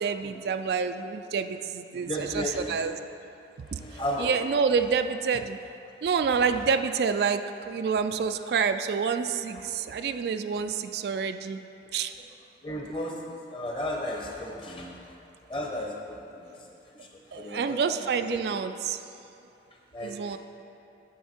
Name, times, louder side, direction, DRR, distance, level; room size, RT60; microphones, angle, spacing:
voice 1, 0.0-2.9 3.7-3.8 4.2-5.6 6.0-11.6 11.9-12.1 17.3-19.0 20.0-20.4, right 6 dB, 65° right, 9 dB, 0.3 m, -28 dB
voice 2, 1.9-2.9 3.6-4.3 8.3-8.4 10.0-10.2 12.6-15.1 15.5-18.6 19.9-20.4, left 1 dB, 30° left, -1 dB, 1.0 m, -35 dB
9.1 x 6.5 x 4.4 m, 2.8 s
head